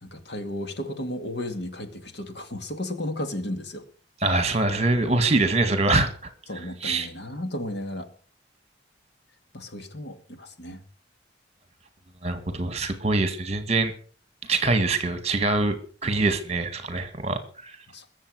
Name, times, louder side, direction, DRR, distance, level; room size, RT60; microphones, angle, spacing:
voice 1, 0.0-3.8 6.5-8.1 9.5-10.8 17.9-18.1, left 1 dB, 55° left, 8 dB, 2.2 m, -34 dB
voice 2, 4.2-6.1 6.8-7.1 12.2-13.9 14.4-15.8 16.0-17.8, right 2 dB, 35° right, 10 dB, 2.0 m, -24 dB
22.0 x 7.5 x 6.4 m, 0.42 s
head